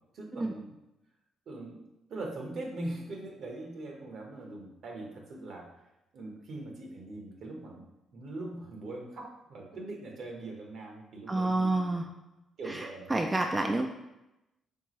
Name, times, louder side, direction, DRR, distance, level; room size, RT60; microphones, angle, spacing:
voice 1, 0.1-0.7 1.5-1.8 2.1-5.7 6.1-7.8 8.1-12.0 12.6-13.2, right 2 dB, 65° right, 1 dB, 1.0 m, -41 dB
voice 2, 11.3-12.1 12.7-13.9, right 2 dB, 20° right, 3 dB, 0.3 m, -29 dB
4.6 x 3.5 x 3.1 m, 0.93 s
cardioid pair, 90°, 0 cm